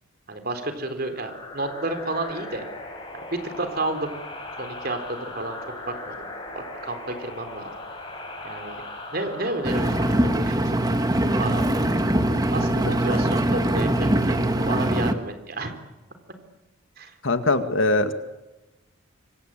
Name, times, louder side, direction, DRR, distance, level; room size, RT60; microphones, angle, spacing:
voice 1, 0.3-2.7 3.1-4.1 4.6-5.6 5.9-6.3 6.6-7.7 8.4-8.8 9.1-10.8 11.4-11.7 12.5-15.7 17.0-17.1, right 2 dB, 45° right, 7 dB, 3.9 m, -31 dB
sound 1, 1.1-12.4, left 2 dB, 25° left, 7.6 m, -39 dB
Engine, 9.6-15.1, right 1 dB, 20° right, 1.8 m, -22 dB
voice 2, 17.2-18.1, left 2 dB, 65° left, 8 dB, 2.0 m, -21 dB
26.5 x 24.0 x 8.9 m, 1.0 s
head